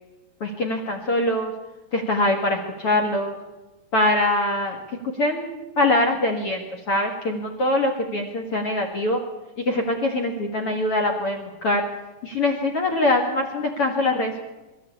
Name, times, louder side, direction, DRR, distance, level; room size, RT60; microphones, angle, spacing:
voice 1, 0.4-1.5 1.9-3.4 3.9-4.8 5.2-9.2 9.7-11.8 12.2-14.4, left 2 dB, 50° left, 5 dB, 1.9 m, -23 dB
23.0 x 13.5 x 8.5 m, 1.1 s
omnidirectional pair, 5.1 m